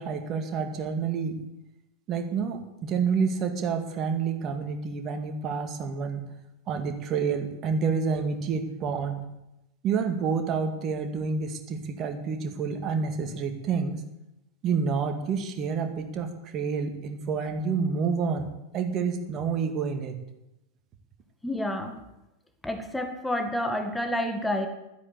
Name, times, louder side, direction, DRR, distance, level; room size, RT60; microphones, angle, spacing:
voice 1, 0.0-1.4 2.1-6.3 6.7-9.3 9.8-14.0 14.6-20.2, right 5 dB, 30° right, 5 dB, 2.1 m, -29 dB
voice 2, 21.4-22.0 22.6-24.7, left 1 dB, 5° left, 6 dB, 1.9 m, -29 dB
12.5 x 10.0 x 8.1 m, 0.91 s
figure-of-eight pair, 90°, 0 cm